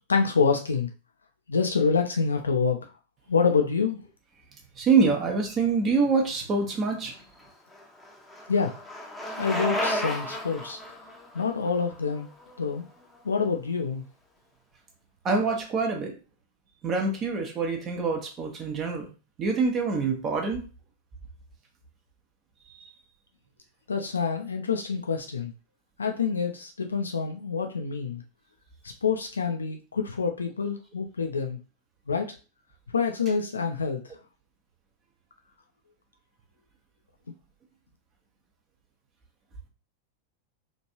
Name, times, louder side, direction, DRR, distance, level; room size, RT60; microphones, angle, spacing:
voice 1, 0.1-0.9 1.5-2.8 3.3-4.0 8.5-8.7 9.4-10.8 11.3-12.3 12.6-12.8 13.2-14.0 23.9-25.5 26.0-28.2 29.0-31.6 32.1-32.3 32.9-34.0, left 5 dB, 75° left, 4 dB, 0.4 m, -26 dB
voice 2, 4.8-7.1 15.2-16.1 16.8-19.1 19.4-20.6, right 4 dB, 30° right, 2 dB, 0.8 m, -25 dB
Bicycle, 7.2-13.2, left 1 dB, 5° left, 0.8 m, -34 dB
3.1 x 2.5 x 2.8 m, 0.33 s
figure-of-eight pair, 90°, 0 cm